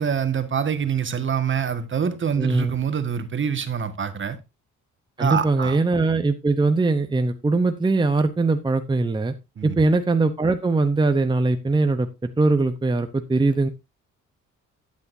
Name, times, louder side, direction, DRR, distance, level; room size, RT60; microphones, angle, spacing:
voice 1, 0.0-4.4 5.2-5.8 9.6-9.8, right 7 dB, 40° right, 1.7 m, -25 dB
voice 2, 2.4-2.8 5.2-9.3 9.6-13.7, right 3 dB, 15° right, 0.8 m, -21 dB
12.5 x 8.5 x 2.7 m
cardioid pair, 90°, 30 cm